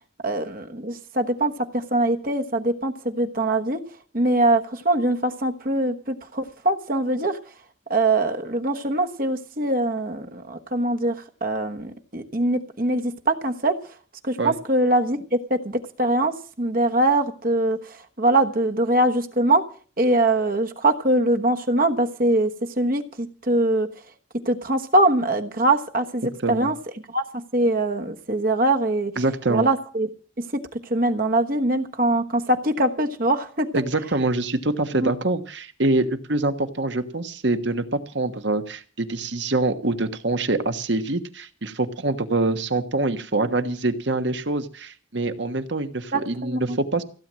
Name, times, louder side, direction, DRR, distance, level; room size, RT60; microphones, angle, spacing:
voice 1, 0.2-3.8 4.1-7.4 7.9-11.1 11.4-13.8 14.2-15.2 15.5-19.6 20.0-22.5 22.8-23.9 24.4-26.7 27.1-29.1 29.5-30.1 30.9-33.7 35.0-35.1 46.1-46.8, right 2 dB, 45° right, 5 dB, 1.2 m, -22 dB
voice 2, 29.2-29.7 33.7-47.0, right 2 dB, 65° right, 8 dB, 1.4 m, -25 dB
16.0 x 9.0 x 7.5 m, 0.40 s
head